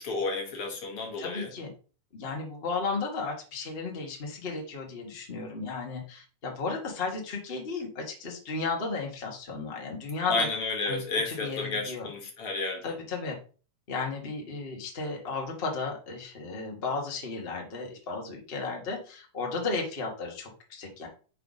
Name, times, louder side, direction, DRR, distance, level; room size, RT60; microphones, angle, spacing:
voice 1, 0.0-1.5 10.3-12.9, left 3 dB, 55° left, 1.7 m, -31 dB
voice 2, 1.2-1.7 2.1-10.5 10.9-11.0 11.3-12.1 12.8-13.3 13.9-21.1, left 4 dB, 70° left, 0.5 m, -34 dB
5.6 x 4.1 x 4.9 m
omnidirectional pair, 3.8 m